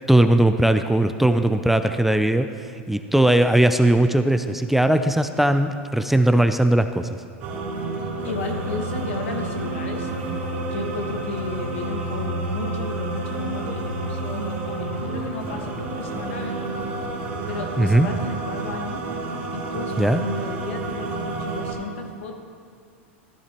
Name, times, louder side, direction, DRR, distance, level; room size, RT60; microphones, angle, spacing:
voice 1, 0.1-2.5 2.9-7.1 17.8-18.1 20.0-20.2, right 1 dB, 5° right, 8 dB, 0.4 m, -18 dB
sound 1, 7.4-21.7, right 2 dB, 65° right, 2.6 m, -29 dB
voice 2, 8.2-16.9 17.5-19.0 19.5-22.3, left 4 dB, 75° left, 3 dB, 1.4 m, -34 dB
14.0 x 9.6 x 3.0 m, 2.3 s
hypercardioid pair, 105°, 7 cm